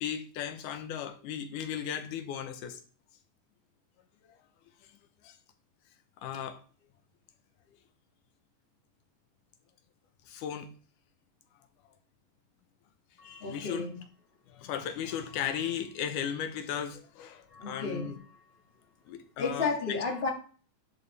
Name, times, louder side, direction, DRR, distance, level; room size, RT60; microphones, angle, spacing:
voice 1, 0.0-2.8 4.2-4.4 4.8-4.9 5.2-5.4 6.2-6.6 10.3-10.7 13.2-13.9 14.5-18.2 19.1-20.0, left 9 dB, 80° left, 7 dB, 2.4 m, -36 dB
voice 2, 13.2-14.0 17.5-18.2 19.4-20.3, left 4 dB, 25° left, -1 dB, 1.6 m, -32 dB
11.0 x 5.1 x 3.3 m, 0.40 s
omnidirectional pair, 3.6 m